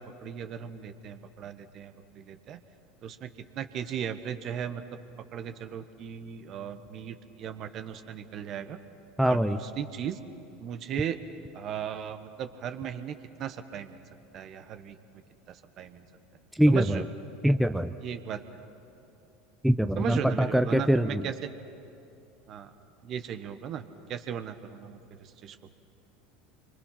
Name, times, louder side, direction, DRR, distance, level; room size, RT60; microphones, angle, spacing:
voice 1, 0.0-2.6 3.0-3.3 3.6-4.8 5.3-8.8 9.3-10.2 10.6-11.2 11.5-14.0 14.3-15.0 15.5-16.0 16.7-17.0 18.0-18.4 20.0-21.5 22.5-22.7 23.0-23.8 24.1-25.6, right 8 dB, 45° right, 10 dB, 1.3 m, -37 dB
voice 2, 9.2-9.6 16.6-17.0 17.4-17.9 19.6-21.2, equal, ahead, 9 dB, 0.8 m, -23 dB
27.0 x 24.5 x 5.9 m, 2.8 s
hypercardioid pair, 80°, 0 cm